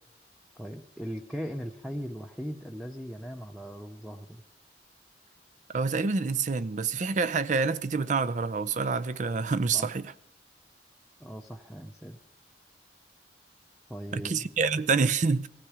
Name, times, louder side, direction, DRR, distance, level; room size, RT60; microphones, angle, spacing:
voice 1, 0.6-4.4 9.7-9.9 11.2-12.2 13.9-14.5, equal, ahead, 0.6 m, -39 dB
voice 2, 5.7-10.1 14.1-15.5, right 4 dB, 45° right, 0.5 m, -27 dB
18.0 x 15.5 x 4.9 m
head